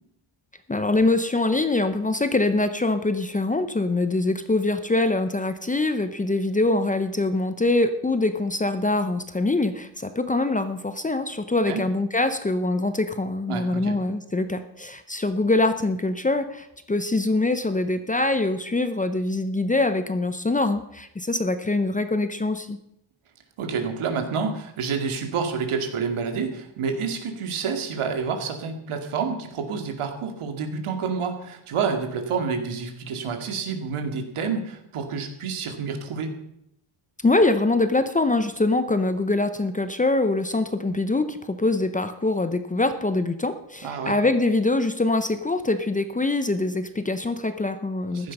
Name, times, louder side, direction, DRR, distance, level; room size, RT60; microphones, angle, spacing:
voice 1, 0.7-22.8 37.2-48.3, left 2 dB, 15° left, 10 dB, 0.7 m, -24 dB
voice 2, 13.5-14.0 23.6-36.3 43.8-44.2 48.1-48.3, right 5 dB, 80° right, 5 dB, 2.4 m, -28 dB
15.0 x 11.5 x 5.5 m, 0.78 s
wide cardioid pair, 140°, 50 cm